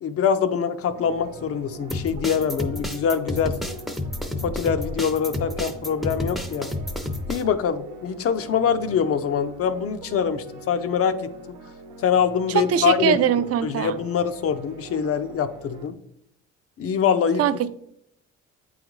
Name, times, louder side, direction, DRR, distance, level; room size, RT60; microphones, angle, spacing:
voice 1, 0.0-3.5 4.4-6.7 7.3-11.6 12.0-13.2 13.6-16.0 16.8-17.4, left 7 dB, 50° left, 11 dB, 0.5 m, -24 dB
sound 1, 0.9-15.9, right 3 dB, 90° right, 0.8 m, -43 dB
sound 2, 1.9-7.4, left 1 dB, ahead, 0.5 m, -30 dB
voice 2, 12.5-14.0 17.4-17.7, right 9 dB, 55° right, 12 dB, 0.5 m, -22 dB
7.9 x 3.9 x 3.1 m, 0.71 s
cardioid pair, 95°, 30 cm